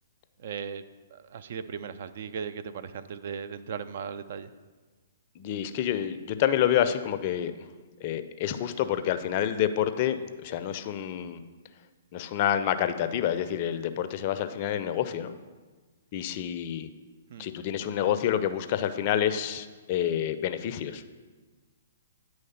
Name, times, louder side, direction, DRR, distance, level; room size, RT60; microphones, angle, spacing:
voice 1, 0.4-4.5 17.3-17.5, right 7 dB, 55° right, 12 dB, 0.3 m, -37 dB
voice 2, 5.4-7.5 8.0-11.4 12.1-15.4 16.1-16.9 17.4-21.0, left 10 dB, 40° left, 10 dB, 0.4 m, -28 dB
9.2 x 3.2 x 5.6 m, 1.4 s
figure-of-eight pair, 125°, 0 cm